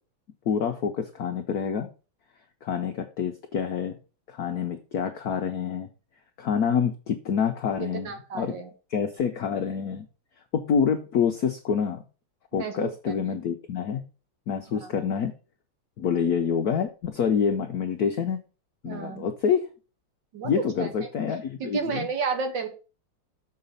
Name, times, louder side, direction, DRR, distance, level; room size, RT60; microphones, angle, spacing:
voice 1, 0.5-1.9 2.6-4.0 4.3-5.9 6.4-8.5 8.9-10.1 10.5-12.0 12.5-14.0 14.5-15.3 16.0-18.4 18.8-19.7 20.4-22.1, left 7 dB, 75° left, 6 dB, 0.8 m, -27 dB
voice 2, 7.9-8.7 12.5-13.4 14.7-15.1 16.2-16.3 18.8-19.3 20.3-21.1 21.6-22.7, right 5 dB, 60° right, 6 dB, 1.8 m, -32 dB
6.6 x 4.8 x 5.3 m, 0.34 s
omnidirectional pair, 2.4 m